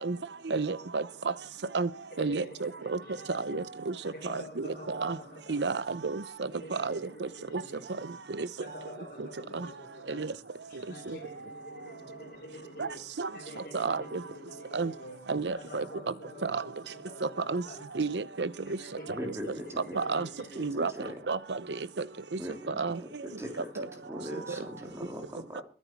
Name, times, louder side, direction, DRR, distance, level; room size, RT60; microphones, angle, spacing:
voice 1, 0.5-1.0 1.7-1.9 2.2-3.0 3.3-3.9 4.2-5.2 5.5-6.2 6.7-7.0 7.5-7.6 8.4-8.5 9.5-9.7 10.1-10.3 11.1-11.2 12.8-12.9 13.2-13.3 13.7-14.2 14.7-14.9 15.3-15.8 16.4-16.6 17.2-17.6 17.9-18.5 19.9-20.3 20.6-20.9 21.3-21.8 22.7-23.0 23.8-23.9, right 4 dB, 85° right, 0.7 m, -31 dB
voice 2, 2.1-3.6 4.0-5.6 6.5-8.1 8.6-10.3 10.7-15.3 15.5-17.9 18.8-20.7 22.5-22.6 23.6-23.7 24.2-25.1, left 1 dB, 55° left, 3.7 m, -47 dB
voice 3, 19.1-20.0 20.4-21.1 22.4-25.6, equal, 15° right, 3.2 m, -41 dB
21.5 x 9.8 x 4.6 m
head